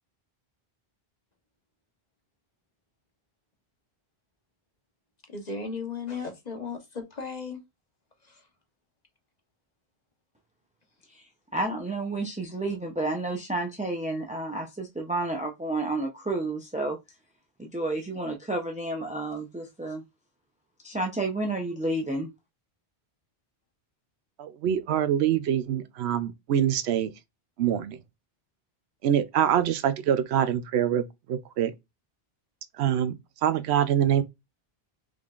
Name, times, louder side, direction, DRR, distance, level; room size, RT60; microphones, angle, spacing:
voice 1, 5.3-7.6, left 4 dB, 45° left, 1.1 m, -35 dB
voice 2, 11.5-17.0 17.6-20.0 20.8-22.3, right 2 dB, 10° right, 0.4 m, -30 dB
voice 3, 24.4-27.1 27.6-28.0 29.0-31.7 32.8-33.1 33.4-34.2, right 10 dB, 90° right, 0.8 m, -25 dB
4.9 x 3.6 x 2.4 m
omnidirectional pair, 1.1 m